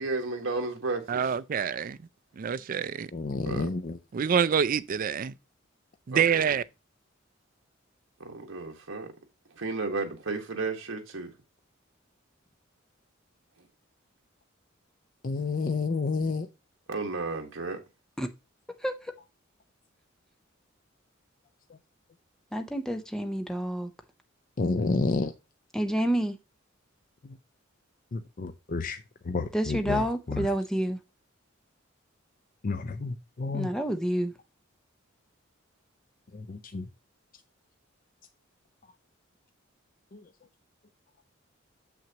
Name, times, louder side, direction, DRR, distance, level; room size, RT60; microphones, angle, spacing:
voice 1, 0.0-1.3 3.4-3.7 6.1-6.6 8.2-9.1 9.5-11.3 13.6-13.7 16.9-17.8, right 3 dB, 75° right, 1.4 m, -33 dB
voice 2, 1.1-2.0 2.4-3.1 4.1-5.3 6.1-6.6, right 7 dB, 45° right, 0.4 m, -26 dB
voice 3, 3.1-3.9 15.2-16.5 24.6-25.3 28.1-29.0 29.3-30.0 30.3-30.5 32.6-33.7 36.5-36.8, left 3 dB, 40° left, 0.5 m, -30 dB
voice 4, 18.8-19.1 22.5-23.9 25.7-26.4 29.5-31.0 33.5-34.3, right 1 dB, 5° left, 0.7 m, -29 dB
7.2 x 6.0 x 2.9 m
head